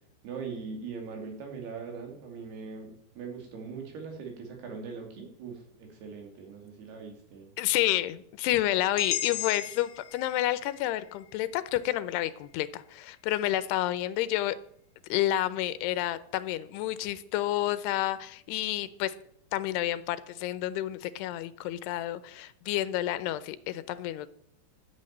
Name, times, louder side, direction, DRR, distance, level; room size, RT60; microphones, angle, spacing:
voice 1, 0.2-7.5, right 5 dB, 75° right, 3 dB, 4.5 m, -41 dB
voice 2, 7.6-14.6 15.1-19.1 19.5-24.3, left 14 dB, 90° left, 14 dB, 2.8 m, -30 dB
sound 1, 9.0-13.0, left 12 dB, 65° left, 2.4 m, -38 dB
11.0 x 8.6 x 8.9 m, 0.71 s
omnidirectional pair, 4.7 m